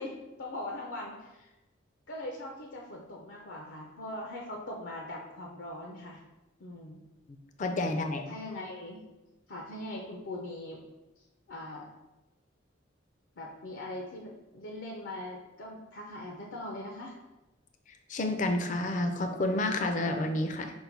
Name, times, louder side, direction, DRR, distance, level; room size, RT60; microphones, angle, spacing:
voice 1, 0.0-1.5 2.1-6.2 6.6-7.0 8.3-9.0 9.5-10.8 11.5-11.9 13.4-17.1, left 1 dB, 80° left, -1 dB, 0.6 m, -41 dB
voice 2, 7.6-8.3 18.1-20.7, left 2 dB, 40° left, 6 dB, 0.4 m, -29 dB
5.4 x 2.2 x 4.5 m, 1.0 s
head